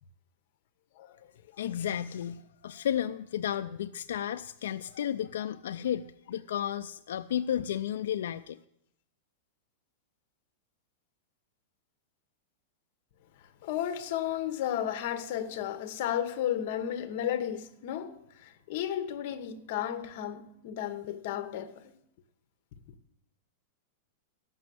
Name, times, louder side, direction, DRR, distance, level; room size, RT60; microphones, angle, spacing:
voice 1, 1.6-8.6, left 10 dB, 85° left, 0.3 m, -33 dB
voice 2, 13.6-21.8, left 10 dB, 50° left, 0.9 m, -33 dB
13.5 x 6.2 x 7.6 m
supercardioid pair, 170°, 0 cm